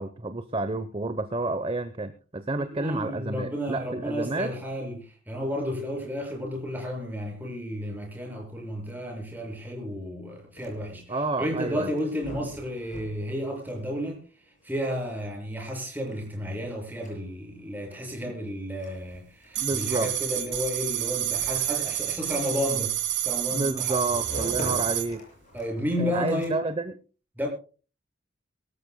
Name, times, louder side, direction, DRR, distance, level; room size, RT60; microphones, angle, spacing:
voice 1, 0.0-4.5 11.1-11.9 19.6-20.1 23.5-25.2 26.0-26.9, right 2 dB, 30° right, 0.9 m, -30 dB
voice 2, 2.6-14.2 14.6-24.2 25.5-26.6 27.4-27.5, equal, 10° right, 6.5 m, -32 dB
sound 1, 10.3-26.9, equal, 40° left, 7.0 m, -45 dB
sound 2, 19.6-25.1, right 12 dB, 65° right, 2.8 m, -29 dB
23.5 x 13.5 x 2.2 m
head